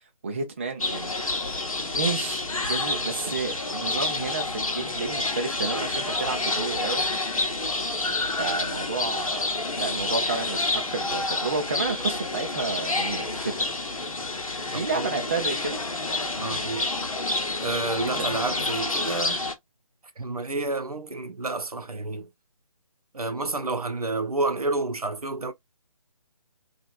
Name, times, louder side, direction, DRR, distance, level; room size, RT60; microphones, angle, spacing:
voice 1, 0.2-1.1 1.9-7.0 8.4-13.6 14.7-15.8 18.0-18.3, right 4 dB, 20° right, 0.5 m, -31 dB
sound 1, 0.8-19.5, left 2 dB, 65° left, 0.9 m, -29 dB
voice 2, 14.7-15.1 16.4-16.9 17.6-19.4 20.2-22.3 23.1-25.5, right 2 dB, 80° right, 0.6 m, -29 dB
2.9 x 2.4 x 2.4 m
figure-of-eight pair, 150°, 19 cm